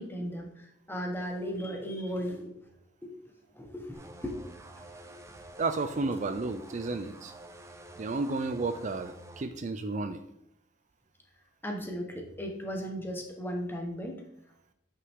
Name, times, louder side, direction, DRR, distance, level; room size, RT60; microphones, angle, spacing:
voice 1, 0.0-2.6 3.0-3.1 3.5-4.3 4.7-5.1 11.6-14.2, equal, 10° left, 2 dB, 1.3 m, -36 dB
sound 1, 3.9-9.4, right 1 dB, 15° right, 0.7 m, -49 dB
voice 2, 5.6-7.3 8.0-10.2, right 3 dB, 40° right, 9 dB, 0.4 m, -32 dB
9.7 x 5.6 x 3.7 m, 0.76 s
head